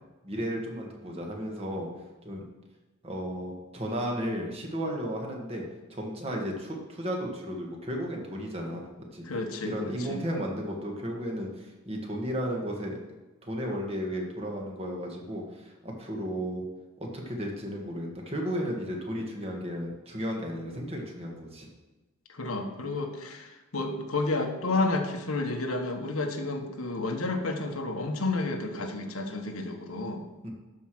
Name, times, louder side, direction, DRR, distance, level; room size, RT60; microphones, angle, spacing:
voice 1, 0.2-1.9 2.2-2.4 3.0-5.6 5.9-8.9 9.1-9.2 9.6-13.0 13.4-16.7 17.0-21.7 30.4-30.5, equal, 30° right, 0 dB, 1.8 m, -34 dB
voice 2, 9.2-10.2 22.3-30.3, left 2 dB, 85° left, 4 dB, 1.4 m, -31 dB
12.5 x 5.0 x 6.1 m, 1.2 s
head